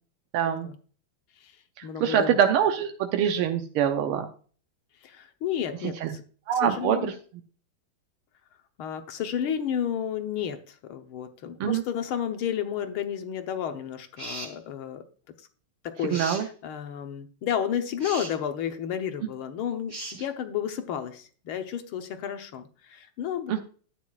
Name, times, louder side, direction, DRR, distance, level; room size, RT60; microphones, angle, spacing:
voice 1, 0.3-0.7 1.8-4.3 6.0-6.1 6.5-7.1 11.6-11.8 16.1-16.5 23.5-23.6, right 8 dB, 90° right, 5 dB, 1.7 m, -24 dB
voice 2, 1.8-2.4 5.0-6.2 6.7-7.1 8.8-15.0 15.8-23.6, left 9 dB, 75° left, 7 dB, 1.8 m, -32 dB
sound 1, 14.2-14.5 16.1-16.4 18.0-18.3 19.9-20.2, right 1 dB, 15° right, 2.5 m, -37 dB
12.0 x 9.0 x 2.4 m, 0.41 s
omnidirectional pair, 2.3 m